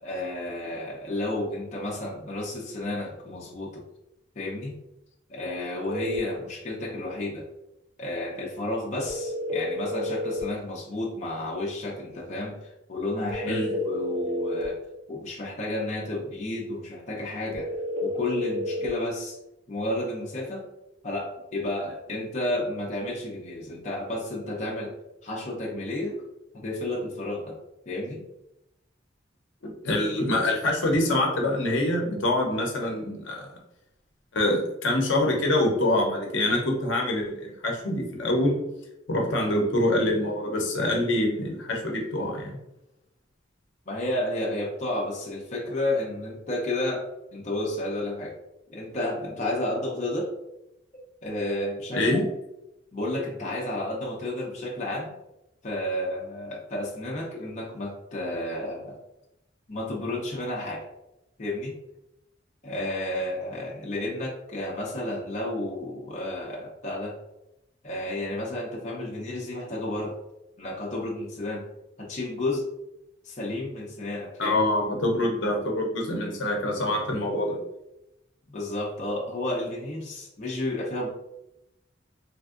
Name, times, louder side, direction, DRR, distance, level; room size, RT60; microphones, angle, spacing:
voice 1, 0.0-3.8 4.4-4.8 5.3-7.5 8.0-14.8 15.1-17.7 18.0-19.4 19.7-20.6 21.0-24.9 25.2-26.2 26.5-27.6 27.9-28.2 43.9-48.3 48.7-50.3 50.9-52.2 52.9-55.1 55.6-59.0 59.7-60.8 61.4-61.7 62.6-67.2 67.8-70.2 70.6-71.7 72.0-72.7 73.2-74.6 78.5-81.1, left 1 dB, 40° left, -4 dB, 0.6 m, -31 dB
sound 1, 5.9-6.2 9.1-10.5 13.3-14.7 17.5-18.9, left 1 dB, 55° right, 0.6 m, -30 dB
voice 2, 29.6-33.5 34.3-38.6 39.1-42.6 51.9-52.3 74.4-77.6, left 1 dB, 70° left, 0 dB, 0.7 m, -25 dB
3.3 x 2.6 x 2.4 m, 0.88 s
head